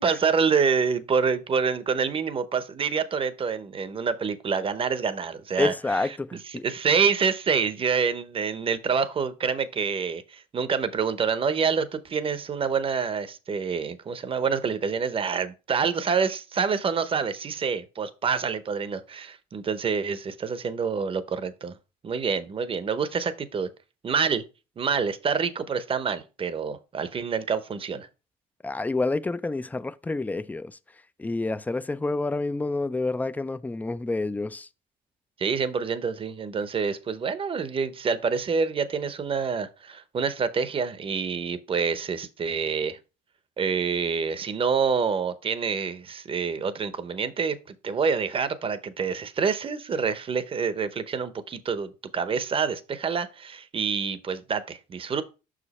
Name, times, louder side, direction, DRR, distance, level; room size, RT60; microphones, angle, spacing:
voice 1, 0.0-21.8 22.0-23.7 24.0-24.4 24.8-28.1 35.4-43.0 43.6-47.6 47.8-55.2, right 5 dB, 30° right, 0.8 m, -27 dB
voice 2, 5.6-6.6 28.6-30.7 31.2-34.7, left 3 dB, 10° left, 0.4 m, -28 dB
6.0 x 5.0 x 4.2 m
cardioid pair, 110°, 17 cm